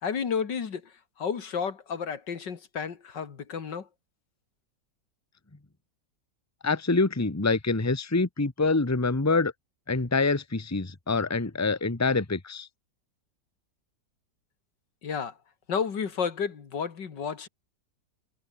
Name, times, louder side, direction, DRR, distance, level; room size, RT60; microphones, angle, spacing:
voice 1, 0.0-3.9 15.0-15.4 15.7-17.5, left 6 dB, 80° left, 2.6 m, -32 dB
voice 2, 6.6-9.5 9.9-12.7, left 3 dB, 10° left, 1.3 m, -26 dB
omnidirectional pair, 1.9 m